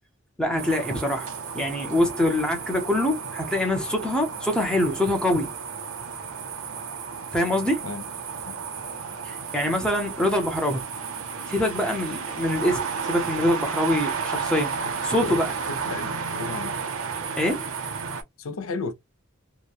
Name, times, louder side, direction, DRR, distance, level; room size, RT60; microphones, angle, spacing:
voice 1, 0.4-1.3 1.5-5.5 7.3-7.8 9.2-10.8 11.5-14.7 15.0-15.5 17.4-17.6, left 1 dB, 5° left, 0.6 m, -24 dB
sound 1, 0.6-18.2, right 5 dB, 70° right, 0.7 m, -32 dB
voice 2, 15.7-16.7 18.4-18.9, left 3 dB, 75° left, 0.6 m, -33 dB
2.9 x 2.1 x 2.3 m
head